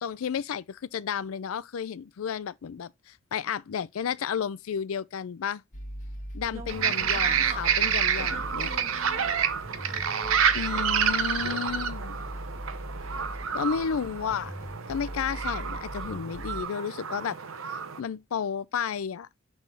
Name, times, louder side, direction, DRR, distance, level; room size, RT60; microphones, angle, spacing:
voice 1, 0.0-5.6 6.3-8.7 10.5-12.2 13.5-14.5 14.9-17.4 17.7-19.3, left 7 dB, 90° left, 0.4 m, -32 dB
sound 1, 5.7-16.6, equal, 40° left, 1.3 m, -40 dB
voice 2, 6.5-7.6 8.2-9.4 9.7-11.4 13.1-13.6, right 2 dB, 30° right, 1.5 m, -45 dB
sound 2, 6.7-18.0, right 7 dB, 85° right, 0.8 m, -29 dB
6.3 x 3.5 x 5.4 m
head